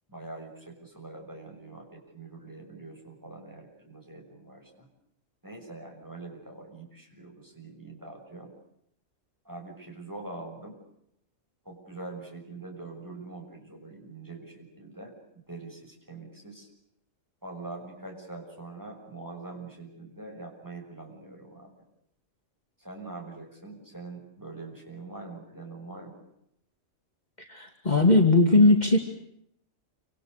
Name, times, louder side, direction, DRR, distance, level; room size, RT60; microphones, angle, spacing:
voice 1, 0.1-4.9 5.4-8.5 9.4-10.8 11.6-15.1 15.5-16.7 17.4-21.7 22.8-26.2, right 3 dB, 15° right, 1 dB, 6.8 m, -43 dB
voice 2, 27.5-29.0, left 2 dB, 35° left, 3 dB, 2.5 m, -19 dB
28.5 x 26.5 x 6.7 m, 0.76 s
omnidirectional pair, 1.3 m